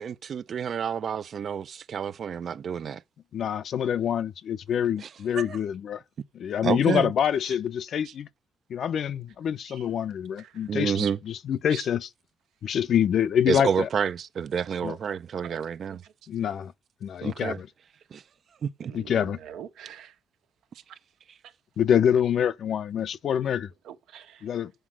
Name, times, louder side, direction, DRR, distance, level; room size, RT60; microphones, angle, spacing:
voice 1, 0.0-3.0 5.0-5.1 5.3-5.6 6.6-7.1 10.7-11.2 13.5-16.0 17.2-17.6 18.1-18.2 18.6-18.9, right 7 dB, 55° right, 0.6 m, -29 dB
voice 2, 3.3-6.0 6.3-8.3 8.7-12.1 12.6-13.9 14.8-15.0 16.3-16.7 17.0-17.7 18.9-19.4 21.8-23.7 24.4-24.7, left 9 dB, 65° left, 0.6 m, -26 dB
voice 3, 10.4-10.7 11.0-11.1 11.7-11.9 15.4-15.6 15.9-16.1 18.8-20.1 20.7-20.8 23.8-24.5, right 9 dB, 80° right, 1.4 m, -42 dB
8.0 x 4.9 x 7.4 m
cardioid pair, 90°, 0 cm